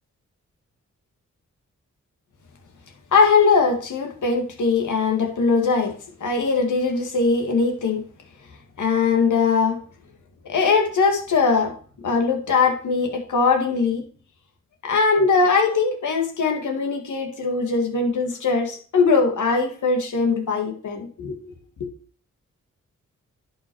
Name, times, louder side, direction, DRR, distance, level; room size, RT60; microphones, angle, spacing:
voice 1, 3.1-5.9 6.2-8.0 8.8-9.8 10.5-11.7 12.0-14.0 14.8-21.5 21.8-21.9, left 4 dB, 75° left, 2 dB, 2.0 m, -21 dB
10.5 x 5.6 x 4.6 m, 0.43 s
cardioid pair, 55°, 31 cm